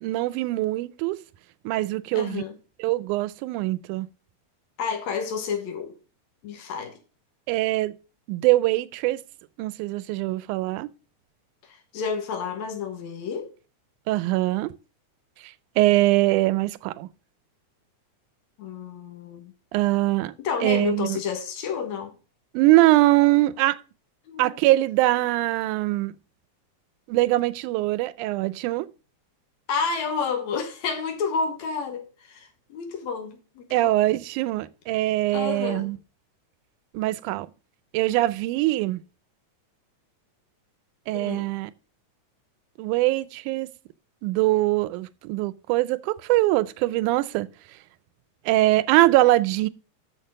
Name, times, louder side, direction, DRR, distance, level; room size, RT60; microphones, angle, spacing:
voice 1, 0.0-1.2 1.7-2.4 2.8-4.1 7.5-8.0 8.3-9.2 9.6-10.9 14.1-14.7 15.8-17.1 19.7-20.3 20.6-21.2 22.5-23.8 24.4-26.1 27.1-28.9 33.7-36.0 36.9-37.5 37.9-39.0 41.1-41.7 42.8-43.7 44.2-47.5 48.5-49.7, right 17 dB, 90° right, 2.1 m, -22 dB
voice 2, 2.1-2.6 4.8-6.0 6.4-6.9 11.6-13.5 18.6-19.5 20.4-22.1 24.3-24.6 29.7-34.0 35.3-35.9 41.1-41.5, left 5 dB, 70° left, 2.7 m, -30 dB
6.6 x 6.3 x 6.4 m
omnidirectional pair, 3.5 m